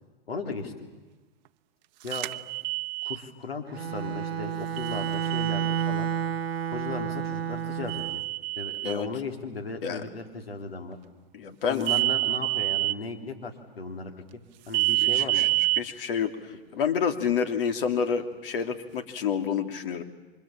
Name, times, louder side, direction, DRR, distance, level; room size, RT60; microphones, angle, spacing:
voice 1, 0.3-0.7 2.0-2.3 3.0-6.1 6.7-8.2 8.6-11.0 11.7-14.4 14.7-15.5, left 3 dB, 90° left, 4 dB, 3.6 m, -36 dB
sound 1, 2.1-3.2 4.8-5.9 7.9-9.0 11.8-13.0 14.7-15.8, right 21 dB, 50° right, 0.8 m, -27 dB
Bowed string instrument, 3.7-8.2, right 9 dB, 85° right, 0.8 m, -30 dB
voice 2, 11.3-11.8 15.0-15.5 15.8-20.0, left 7 dB, 65° left, 7 dB, 2.7 m, -29 dB
29.5 x 25.0 x 7.3 m, 1.3 s
hypercardioid pair, 115°, 29 cm